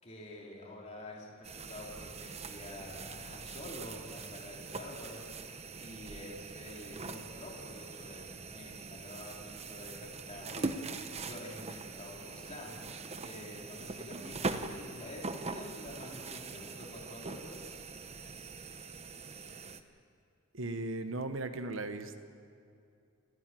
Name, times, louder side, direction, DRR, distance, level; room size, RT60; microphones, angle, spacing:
voice 1, 0.0-5.4 5.8-12.8 13.2-15.2 15.5-17.8, left 1 dB, 35° left, -3 dB, 3.3 m, -48 dB
sound 1, 1.4-19.8, right 3 dB, 30° right, 0.9 m, -42 dB
voice 2, 20.5-22.2, right 2 dB, 70° right, 8 dB, 1.1 m, -37 dB
29.5 x 10.5 x 9.0 m, 2.5 s
head